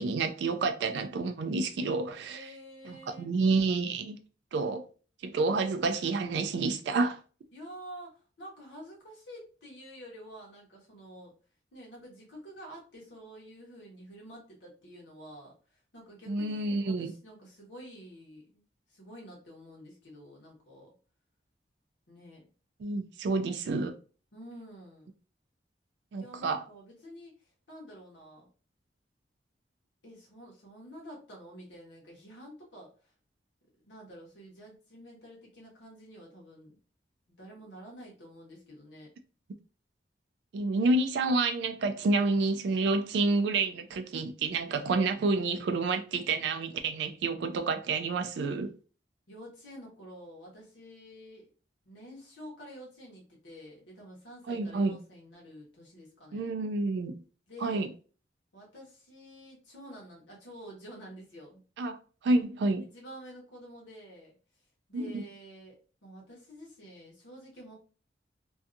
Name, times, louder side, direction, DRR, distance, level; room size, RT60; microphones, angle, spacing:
voice 1, 0.0-2.5 2.8-4.2 4.5-4.8 5.2-7.2 16.3-17.1 22.8-23.9 26.1-26.6 40.5-48.7 54.5-54.9 56.3-57.2 57.6-57.9 61.8-62.0 62.2-62.9 64.9-65.2, right 3 dB, 75° right, 0.3 m, -29 dB
voice 2, 2.3-3.3 7.5-11.3 11.7-18.6 18.9-20.9 22.1-22.4 24.3-25.1 26.2-28.5 30.0-33.1 33.8-36.8 37.4-39.1 49.3-51.5 51.8-56.5 57.5-57.9 58.5-61.6 62.8-64.3 64.9-67.7, equal, 90° left, 1.0 m, -49 dB
2.6 x 2.3 x 2.5 m
head